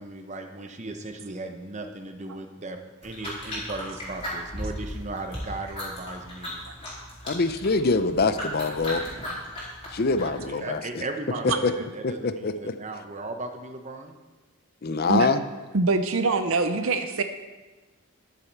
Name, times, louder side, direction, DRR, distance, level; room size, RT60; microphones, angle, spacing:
voice 1, 0.0-6.7 10.2-14.1, right 2 dB, 30° right, 5 dB, 0.8 m, -37 dB
sound 1, 3.0-10.5, equal, 25° left, 4.1 m, -37 dB
voice 2, 7.3-9.0 9.9-11.0 11.4-11.7 12.0-12.8 14.8-15.4, left 3 dB, 45° left, 11 dB, 0.6 m, -24 dB
voice 3, 15.7-17.2, right 3 dB, 65° right, 8 dB, 0.7 m, -24 dB
13.5 x 7.2 x 4.6 m, 1.2 s
head